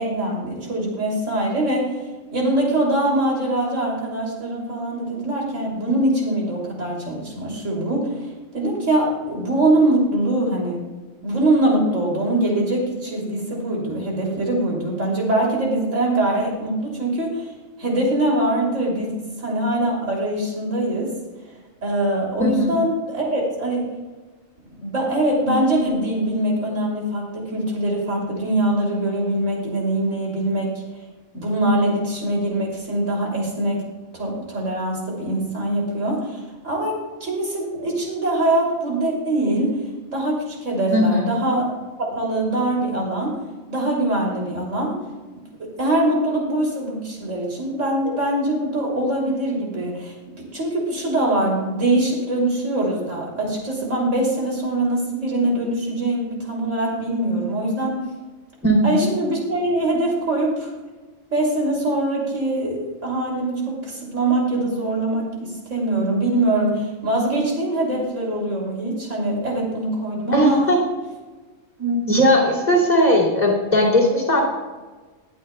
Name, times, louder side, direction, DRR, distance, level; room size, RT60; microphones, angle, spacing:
voice 1, 0.0-2.0 2.3-8.3 8.5-10.8 11.2-17.5 17.8-21.1 21.8-23.9 24.7-30.8 31.3-33.8 34.1-39.8 40.1-41.7 42.0-43.4 43.7-44.9 45.6-50.1 50.5-58.0 58.8-60.7 61.3-70.6 71.8-72.1, right 1 dB, 65° right, -2 dB, 3.2 m, -23 dB
voice 2, 22.4-22.7 40.9-41.3 58.6-59.1 70.3-70.8 72.1-74.4, equal, 30° left, -4 dB, 3.1 m, -18 dB
21.5 x 9.0 x 2.2 m, 1.3 s
omnidirectional pair, 1.4 m